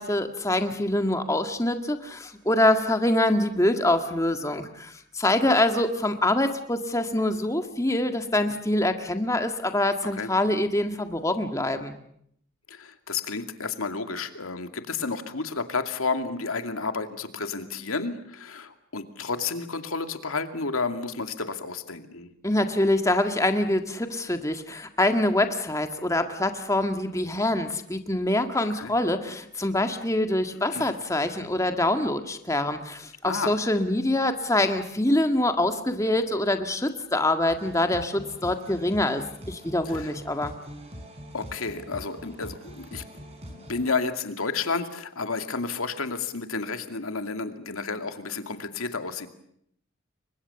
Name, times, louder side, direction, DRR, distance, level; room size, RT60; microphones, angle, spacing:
voice 1, 0.0-11.9 22.4-40.5, left 1 dB, 15° left, 7 dB, 1.8 m, -25 dB
voice 2, 12.7-22.3 28.8-28.9 30.7-30.9 33.3-33.6 39.9-40.1 41.3-43.0 43.5-49.3, left 4 dB, 90° left, 7 dB, 2.4 m, -31 dB
sound 1, 37.5-43.9, equal, 30° right, 6.3 m, -43 dB
30.0 x 23.5 x 7.1 m, 0.70 s
head